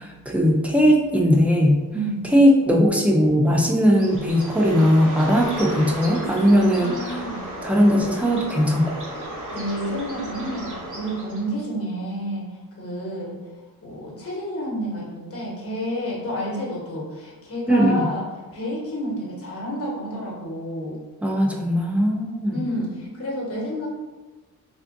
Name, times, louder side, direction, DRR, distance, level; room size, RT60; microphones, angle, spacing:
voice 1, 0.3-1.8 2.3-7.2 7.6-8.9 17.7-18.1 21.2-22.6, equal, 5° right, -1 dB, 0.5 m, -19 dB
voice 2, 1.9-2.3 6.8-7.4 9.5-13.4 13.8-21.0 22.5-23.9, equal, 40° left, -4 dB, 1.1 m, -30 dB
Bird, 3.9-11.6, equal, 55° right, 1.0 m, -34 dB
3.5 x 2.4 x 2.6 m, 1.2 s
cardioid pair, 80°, 37 cm